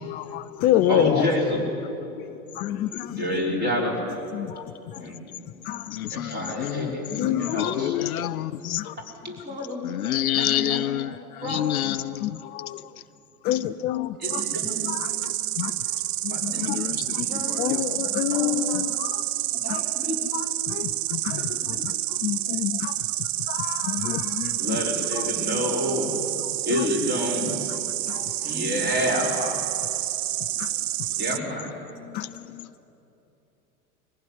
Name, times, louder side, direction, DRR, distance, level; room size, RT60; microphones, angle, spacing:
voice 1, 0.0-1.5 2.0-3.3 4.3-5.0 5.6-6.0 7.2-8.4 8.6-8.9 9.5-9.6 11.5-12.9 13.4-14.4 14.8-16.8 17.1-17.2 17.6-19.2 19.7-19.8 20.3-24.8 25.1-25.3 26.4-26.9 27.4-27.8 28.1-28.5 30.6-30.7 31.2-31.4 31.9-32.7, left 13 dB, 25° left, 0.4 m, -29 dB
voice 2, 0.9-1.6 3.2-4.0 5.0-5.2 6.1-7.9 9.2-9.8 10.4-10.8 11.4-11.7 14.2-14.9 16.3-18.9 19.6-20.2 21.5-21.8 24.6-26.2 26.7-27.6 28.4-29.6 31.2-31.7, equal, 20° right, 5.6 m, -29 dB
voice 3, 5.9-8.9 9.8-12.4 13.5-13.6 16.5-17.9 22.5-22.6 32.2-32.3 32.6-32.7, left 12 dB, 65° left, 0.6 m, -29 dB
Insect, 14.2-31.4, right 14 dB, 55° right, 0.6 m, -29 dB
22.5 x 16.0 x 9.9 m
figure-of-eight pair, 90°, 45 cm